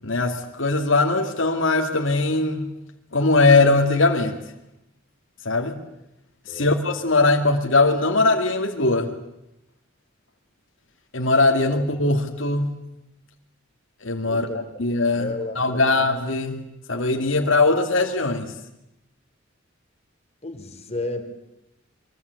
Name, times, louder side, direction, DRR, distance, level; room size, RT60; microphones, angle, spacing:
voice 1, 0.0-2.7 3.1-4.4 5.4-5.8 6.5-9.1 11.1-12.7 14.0-18.5, left 3 dB, 70° left, 3 dB, 2.4 m, -20 dB
voice 2, 6.5-6.8 14.2-14.6 15.1-16.0 20.4-21.4, left 2 dB, 35° left, 7 dB, 3.2 m, -33 dB
24.5 x 23.0 x 8.3 m, 0.87 s
head